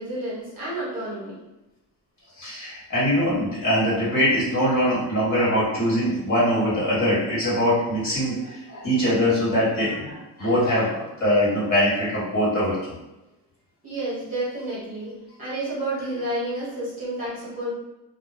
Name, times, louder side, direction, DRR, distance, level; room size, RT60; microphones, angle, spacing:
voice 1, 0.0-1.4 13.8-15.1 15.4-17.7, right 1 dB, 20° right, -10 dB, 1.0 m, -30 dB
voice 2, 2.4-12.8, equal, 40° left, -8 dB, 1.3 m, -22 dB
2.3 x 2.1 x 3.0 m, 1.0 s
cardioid pair, 160°, 42 cm